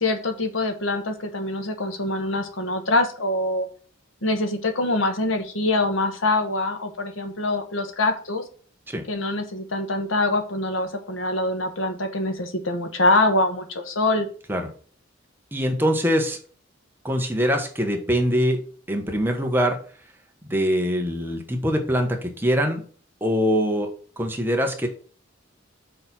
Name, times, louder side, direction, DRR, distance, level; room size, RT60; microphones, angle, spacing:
voice 1, 0.0-3.7 4.2-8.4 9.1-14.3, left 2 dB, 75° left, 6 dB, 1.4 m, -24 dB
voice 2, 15.5-16.4 17.0-18.6 18.9-19.8 20.5-22.8 23.2-24.9, equal, 10° right, 3 dB, 1.2 m, -23 dB
6.5 x 4.3 x 5.9 m, 0.42 s
head